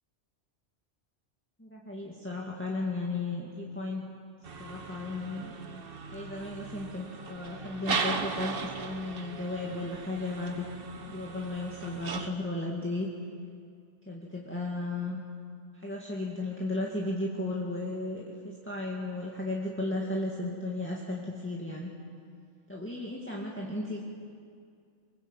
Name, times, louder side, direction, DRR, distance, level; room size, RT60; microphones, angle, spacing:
voice 1, 1.6-4.0 4.6-5.5 6.1-10.6 11.0-13.1 14.1-15.2 15.7-21.9 22.7-24.0, left 2 dB, 10° left, -3 dB, 2.2 m, -35 dB
sound 1, 4.4-12.3, right 4 dB, 55° right, 1.3 m, -37 dB
24.0 x 21.5 x 8.3 m, 2.3 s
omnidirectional pair, 1.2 m